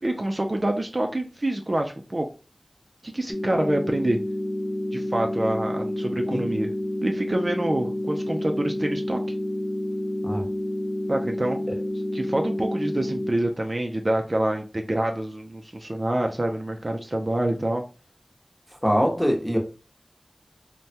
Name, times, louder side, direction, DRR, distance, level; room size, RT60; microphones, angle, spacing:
voice 1, 0.0-2.3 3.0-4.2 4.9-6.7 7.0-9.2 11.1-11.6 12.1-17.8, right 1 dB, 45° right, 4 dB, 0.4 m, -26 dB
sound 1, 3.3-13.3, left 1 dB, 55° left, 0.7 m, -29 dB
voice 2, 18.8-19.6, equal, 10° left, 1 dB, 0.9 m, -22 dB
3.3 x 2.2 x 2.7 m, 0.34 s
wide cardioid pair, 45°, 0 cm